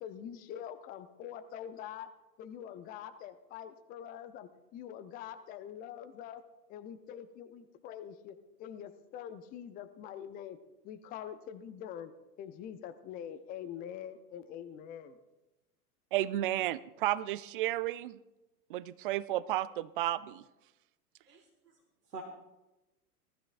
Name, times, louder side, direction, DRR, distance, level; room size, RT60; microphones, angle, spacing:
voice 1, 0.0-2.1 2.4-6.4 6.7-10.6 10.8-12.1 12.4-15.2, left 9 dB, 20° left, 10 dB, 0.5 m, -44 dB
voice 2, 16.1-18.2 18.7-20.4, right 14 dB, 40° right, 19 dB, 0.4 m, -32 dB
voice 3, 21.3-21.8 22.1-22.2, right 4 dB, 85° right, 1 dB, 1.6 m, -46 dB
18.5 x 13.0 x 2.5 m, 1.0 s
figure-of-eight pair, 95°, 47 cm